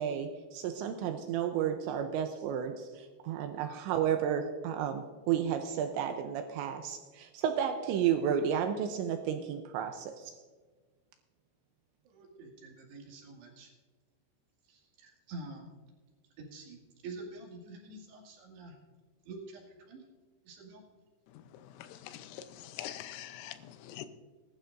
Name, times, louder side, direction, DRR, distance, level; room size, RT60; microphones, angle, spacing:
voice 1, 0.0-10.3, right 8 dB, 85° right, 6 dB, 2.7 m, -32 dB
voice 2, 12.1-13.7 14.7-15.7 16.4-18.8 19.3-20.0 20.5-20.8, right 3 dB, 65° right, -1 dB, 4.0 m, -47 dB
voice 3, 21.8-24.1, left 12 dB, 90° left, 10 dB, 3.4 m, -44 dB
20.0 x 12.0 x 2.6 m, 1.4 s
omnidirectional pair, 5.7 m